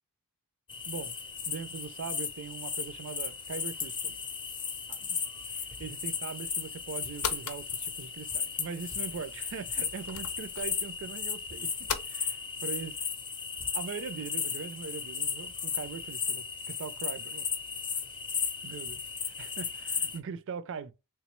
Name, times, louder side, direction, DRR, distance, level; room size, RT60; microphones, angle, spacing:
sound 1, 0.7-20.2, left 6 dB, 20° left, 0.5 m, -35 dB
voice 1, 0.9-1.2 1.5-4.2 4.9-5.2 5.5-13.0 13.7-17.5 18.6-20.9, right 5 dB, 60° right, 0.4 m, -41 dB
sound 2, 6.5-12.1, left 7 dB, 80° left, 0.6 m, -41 dB
3.6 x 3.0 x 3.0 m
head